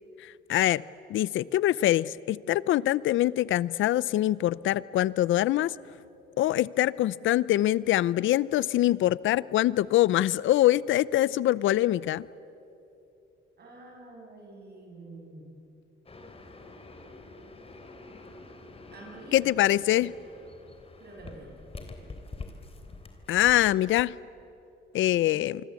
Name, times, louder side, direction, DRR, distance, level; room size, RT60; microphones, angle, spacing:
voice 1, 0.5-0.8 1.1-5.7 6.4-12.3 19.3-20.1 23.3-24.1 24.9-25.6, left 14 dB, 75° left, 20 dB, 0.6 m, -24 dB
voice 2, 13.6-15.5 18.9-20.1 21.0-21.6 25.1-25.5, right 2 dB, 55° right, -1 dB, 7.8 m, -47 dB
sound 1, 16.1-24.0, left 3 dB, 30° left, 3.5 m, -46 dB
26.0 x 25.5 x 8.4 m, 2.9 s
cardioid pair, 90°, 20 cm